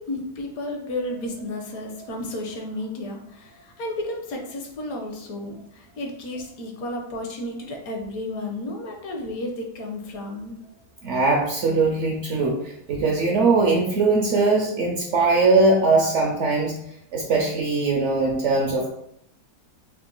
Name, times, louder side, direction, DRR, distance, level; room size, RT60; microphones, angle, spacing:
voice 1, 0.0-10.6, left 1 dB, 70° left, 2 dB, 1.1 m, -32 dB
voice 2, 11.0-16.7 17.1-18.9, right 3 dB, 65° right, 0 dB, 0.8 m, -21 dB
3.8 x 2.4 x 3.7 m, 0.76 s
omnidirectional pair, 1.7 m